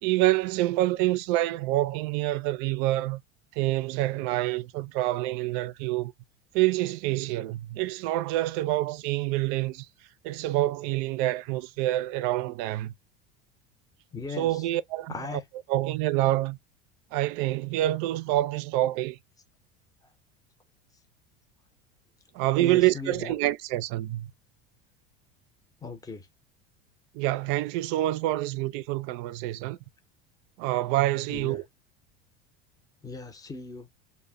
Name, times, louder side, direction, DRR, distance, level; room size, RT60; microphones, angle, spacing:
voice 1, 0.0-3.2 3.5-6.1 6.5-9.9 10.2-12.9 14.4-15.4 15.7-16.6 17.1-19.2 22.3-24.3 27.1-29.8 30.6-31.6, right 16 dB, 60° right, 0.4 m, -27 dB
voice 2, 14.1-14.6 15.1-15.4 22.6-23.3 25.8-26.3 31.3-31.6 33.0-33.9, left 4 dB, 10° left, 0.6 m, -38 dB
2.1 x 2.0 x 3.4 m
supercardioid pair, 100°, 31 cm